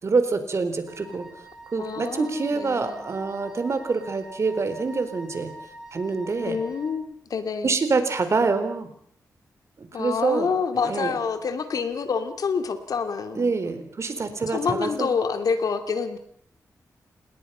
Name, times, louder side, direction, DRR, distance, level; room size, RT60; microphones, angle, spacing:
voice 1, 0.0-1.2 1.7-5.5 5.9-6.6 7.6-8.9 9.8-10.5 10.8-11.2 13.4-15.1, right 4 dB, 50° right, 9 dB, 4.0 m, -26 dB
Wind instrument woodwind instrument, 0.9-7.0, right 1 dB, 10° right, 7.3 m, -45 dB
voice 2, 1.8-3.0 6.4-7.7 9.9-13.5 14.5-16.2, left 5 dB, 80° left, 8 dB, 2.7 m, -27 dB
28.5 x 20.0 x 5.7 m, 0.62 s
wide cardioid pair, 100°, 6 cm